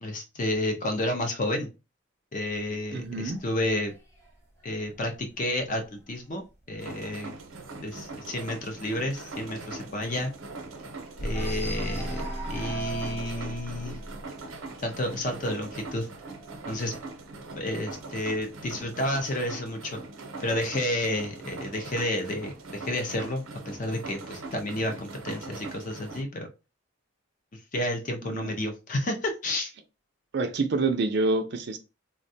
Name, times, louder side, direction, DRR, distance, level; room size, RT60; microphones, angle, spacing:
voice 1, 0.0-1.7 2.3-3.9 4.6-6.4 6.7-7.4 7.8-10.3 11.2-14.0 14.8-16.1 16.7-16.9 17.5-20.0 20.4-26.5 27.5-29.7, left 1 dB, 40° left, 0.5 m, -31 dB
sound 1, 2.5-6.1 6.5-6.9 7.1-7.2 7.6-10.9 11.3-17.8 18.7-19.7, right 3 dB, 10° left, 0.9 m, -43 dB
voice 2, 2.9-3.4 28.2-28.5 30.3-31.8, right 3 dB, 55° right, 0.4 m, -27 dB
sound 2, 6.8-26.2, right 3 dB, 85° right, 0.7 m, -42 dB
sound 3, 11.2-14.3, equal, 70° left, 0.7 m, -35 dB
3.5 x 2.1 x 2.6 m
head